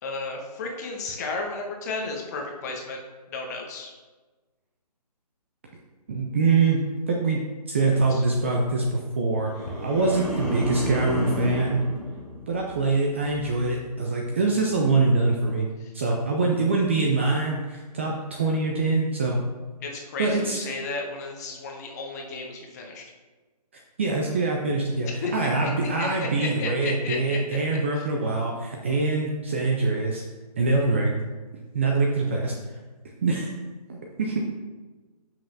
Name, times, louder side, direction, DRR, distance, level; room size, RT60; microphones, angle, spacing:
voice 1, 0.0-3.0 3.3-3.9 7.8-8.2 15.8-15.9 19.8-23.0 25.1-25.7 26.0-28.1, left 3 dB, 25° left, 1 dB, 1.0 m, -34 dB
voice 2, 6.1-6.8 7.1-7.4 7.7-9.5 9.8-11.8 12.5-15.7 15.9-19.4 20.2-20.6 24.0-30.2 30.6-31.2 31.7-32.5 33.2-33.5 33.9-34.4, right 3 dB, 20° right, 0 dB, 0.4 m, -24 dB
sound 1, 9.4-12.9 13.2-13.6, equal, 5° left, 1.5 m, -32 dB
11.0 x 5.7 x 2.6 m, 1.3 s
figure-of-eight pair, 145°, 21 cm